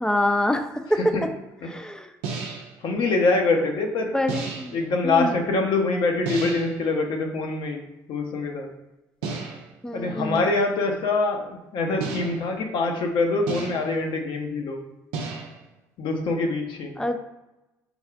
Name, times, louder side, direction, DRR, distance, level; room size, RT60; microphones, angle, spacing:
voice 1, 0.0-1.0 1.7-2.1 4.1-4.8 5.0-5.3 9.8-10.4 17.0-17.2, left 1 dB, 10° left, 6 dB, 0.5 m, -25 dB
voice 2, 0.9-1.2 1.6-1.7 2.8-4.1 4.7-8.7 9.9-14.8 16.0-17.0, left 3 dB, 60° left, 2 dB, 0.8 m, -24 dB
sound 1, 2.2-2.8 4.3-4.9 6.3-6.8 9.2-9.8 12.0-12.6 13.5-14.0 15.1-15.7, right 5 dB, 80° right, 0.6 m, -33 dB
3.5 x 2.4 x 4.5 m, 0.98 s
hypercardioid pair, 65°, 9 cm